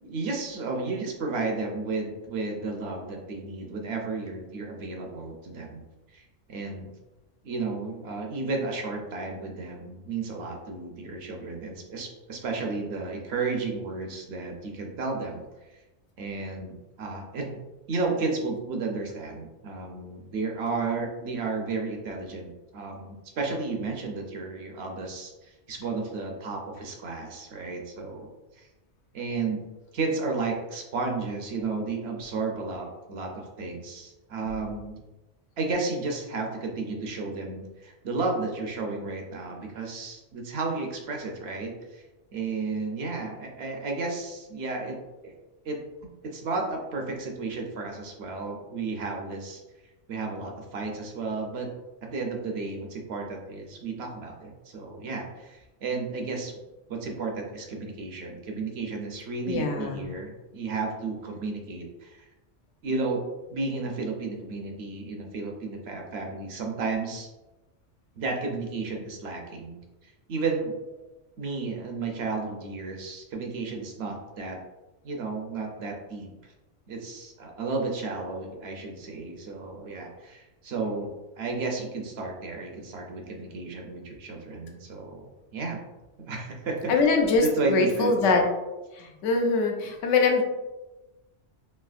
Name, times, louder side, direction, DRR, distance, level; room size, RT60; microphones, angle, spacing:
voice 1, 0.0-5.9 6.1-6.9 7.4-15.4 16.2-17.6 17.9-28.3 28.6-28.7 29.1-29.6 29.9-35.0 35.6-42.0 42.3-45.0 45.2-45.3 45.6-45.8 46.2-49.6 50.1-51.7 52.1-56.5 56.9-62.2 62.8-63.2 63.5-67.3 68.2-69.8 70.3-70.8 71.4-74.6 75.0-76.5 76.9-81.1 81.4-85.8 86.2-86.9 87.4-88.2, right 3 dB, 65° right, 1 dB, 0.8 m, -33 dB
voice 2, 59.5-60.1 86.9-88.4 88.9-90.4, left 3 dB, 85° left, 2 dB, 0.9 m, -23 dB
3.3 x 2.7 x 2.3 m, 1.1 s
omnidirectional pair, 1.2 m